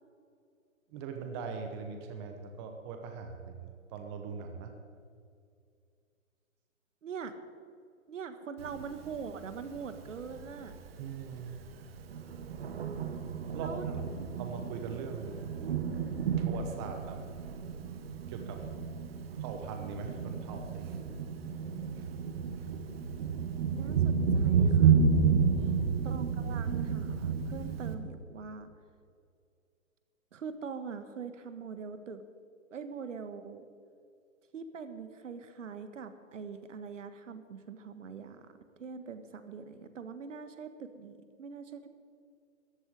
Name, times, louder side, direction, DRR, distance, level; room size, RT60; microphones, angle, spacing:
voice 1, 0.9-3.6 3.9-4.7 11.0-11.6 13.5-14.0 14.4-15.5 16.5-17.2 18.3-18.6 19.4-21.0 25.5-26.1, right 5 dB, 20° right, 5 dB, 0.9 m, -41 dB
voice 2, 7.0-7.3 8.1-10.7 13.6-13.9 14.2-14.5 23.7-25.0 26.0-28.7 30.3-32.2 32.7-33.7 34.5-41.9, right 6 dB, 60° right, 10 dB, 1.5 m, -43 dB
Thunder, 8.6-27.9, right 6 dB, 45° right, 1.4 m, -31 dB
14.0 x 8.1 x 9.5 m, 2.3 s
hypercardioid pair, 145°, 41 cm